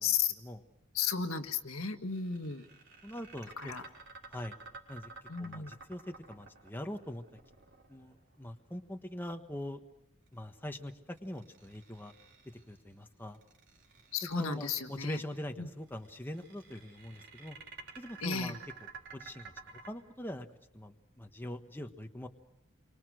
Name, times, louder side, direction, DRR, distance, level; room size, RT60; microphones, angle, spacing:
voice 1, 0.0-0.3 0.9-2.6 3.6-3.8 5.3-5.7 14.1-15.2 15.6-15.7 18.2-18.5, left 6 dB, 75° left, 6 dB, 1.8 m, -34 dB
sound 1, 2.1-8.3 11.2-12.7 13.3-14.6 15.9-19.9, right 5 dB, 60° right, 4.1 m, -51 dB
voice 2, 3.0-3.8 4.3-4.5 4.9-5.1 5.4-7.2 7.9-9.8 10.3-12.1 12.7-13.4 14.2-17.6 18.0-18.6 19.1-19.5 19.9-20.5 20.7-22.3, left 1 dB, 10° left, 4 dB, 1.3 m, -42 dB
29.0 x 24.5 x 6.4 m, 0.84 s
head